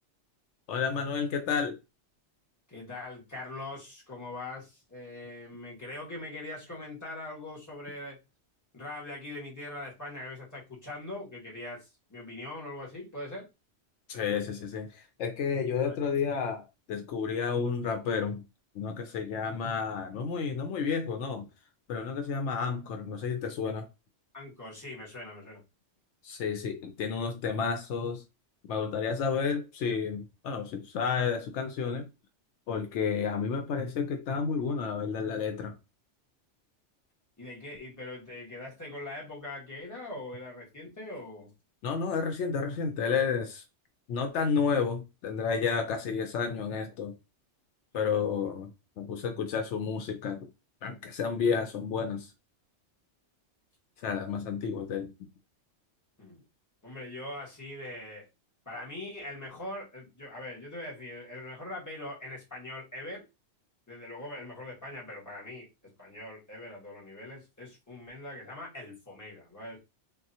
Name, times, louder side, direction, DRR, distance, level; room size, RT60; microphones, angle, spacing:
voice 1, 0.7-1.8 14.1-18.4 18.8-21.5 21.9-23.9 26.2-28.2 28.7-32.1 32.7-35.8 41.8-43.6 44.1-47.1 47.9-50.5 50.8-52.3 54.0-55.1, left 6 dB, 80° left, 0.9 m, -31 dB
voice 2, 2.7-8.2 8.7-13.5 15.8-16.0 24.3-25.6 37.4-41.5 47.9-48.2 56.2-56.4 56.8-58.3 58.6-63.2 63.9-69.8, left 2 dB, 15° left, 1.4 m, -42 dB
3.7 x 2.3 x 2.7 m
omnidirectional pair, 1.2 m